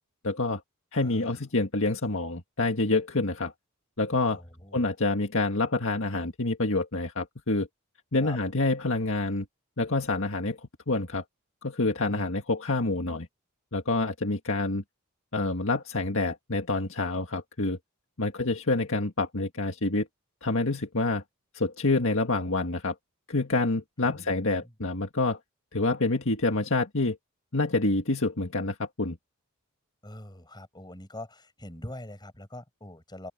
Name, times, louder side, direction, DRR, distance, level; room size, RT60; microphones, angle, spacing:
voice 1, 0.2-0.6 0.9-3.5 4.0-4.4 4.7-7.7 8.1-9.5 9.8-10.6 10.9-11.2 11.6-13.3 13.7-14.8 15.3-17.8 18.2-20.1 20.4-21.2 21.5-23.0 23.3-25.4 25.7-27.2 27.5-29.2, left 2 dB, 65° left, 1.9 m, -27 dB
voice 2, 1.0-1.4 4.3-4.9 8.2-8.4 12.1-12.3 24.0-24.7 30.0-33.3, left 1 dB, 20° left, 5.2 m, -44 dB
open air
head